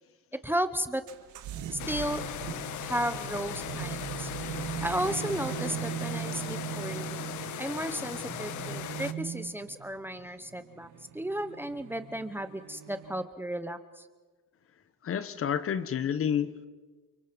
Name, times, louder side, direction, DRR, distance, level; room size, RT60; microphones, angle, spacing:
voice 1, 0.4-1.0 1.7-2.2 2.8-4.6 4.8-7.2 7.6-10.9 11.1-14.0, equal, 5° right, 10 dB, 1.0 m, -34 dB
sound 1, 1.1-13.2, right 10 dB, 65° right, 2.0 m, -39 dB
sound 2, 1.8-9.1, left 11 dB, 65° left, 1.3 m, -38 dB
voice 2, 15.0-16.7, left 8 dB, 45° left, 13 dB, 1.3 m, -29 dB
29.5 x 24.0 x 5.3 m, 1.3 s
cardioid pair, 135°, 32 cm